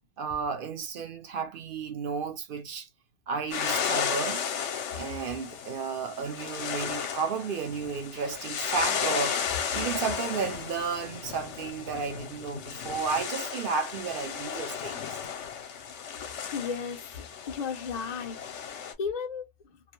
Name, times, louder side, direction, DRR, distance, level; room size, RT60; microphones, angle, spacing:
voice 1, 0.2-2.9 3.3-4.4 5.0-15.2, right 5 dB, 55° right, 0.7 m, -33 dB
sound 1, 3.5-18.9, left 7 dB, 70° left, 0.9 m, -34 dB
voice 2, 16.5-19.5, left 6 dB, 45° left, 0.5 m, -35 dB
2.4 x 2.1 x 2.9 m
omnidirectional pair, 1.3 m